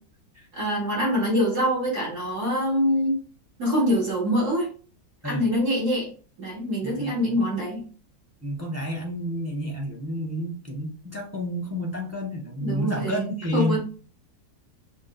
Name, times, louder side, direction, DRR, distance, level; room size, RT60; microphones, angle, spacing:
voice 1, 0.5-3.2 3.6-4.7 5.2-6.1 6.4-7.8 12.6-13.8, equal, 55° right, -6 dB, 2.9 m, -24 dB
voice 2, 6.8-7.2 8.4-13.8, left 1 dB, 20° right, 0 dB, 0.4 m, -30 dB
6.2 x 2.1 x 3.9 m, 0.38 s
omnidirectional pair, 1.9 m